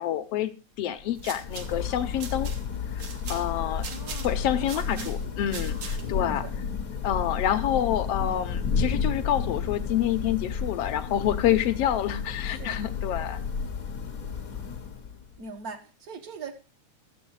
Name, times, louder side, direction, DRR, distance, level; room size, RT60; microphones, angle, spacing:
voice 1, 0.0-2.5 2.9-3.9 4.2-6.5 7.0-13.4, left 11 dB, 70° left, 10 dB, 1.5 m, -28 dB
Thunder / Rain, 1.0-15.4, left 6 dB, 55° left, 0.9 m, -32 dB
sound 1, 1.0-6.3, right 6 dB, 65° right, 2.6 m, -42 dB
voice 2, 3.9-5.3 6.4-6.5 12.4-12.8 15.4-16.5, right 4 dB, 45° right, 7 dB, 1.3 m, -41 dB
14.0 x 7.9 x 4.7 m, 0.33 s
omnidirectional pair, 3.4 m